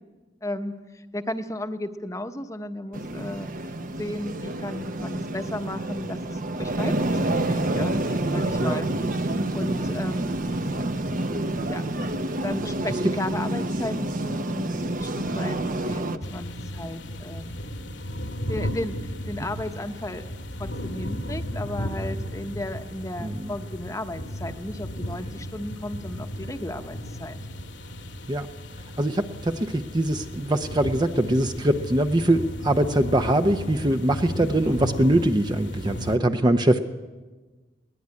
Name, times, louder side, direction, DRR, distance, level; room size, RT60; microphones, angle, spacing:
voice 1, 0.4-0.7 1.1-3.5 4.0-8.9 9.5-10.4 11.7-11.8 12.4-17.7 18.5-20.2 20.6-27.4 33.8-34.1, left 1 dB, 15° left, 8 dB, 1.0 m, -34 dB
sound 1, 2.9-16.2, right 1 dB, 45° right, 1.0 m, -28 dB
sound 2, 16.2-36.2, equal, 85° left, 2.3 m, -35 dB
voice 2, 23.2-23.5 28.3-28.5 29.0-36.8, right 1 dB, 25° right, 7 dB, 0.7 m, -22 dB
21.5 x 18.5 x 9.7 m, 1.3 s
head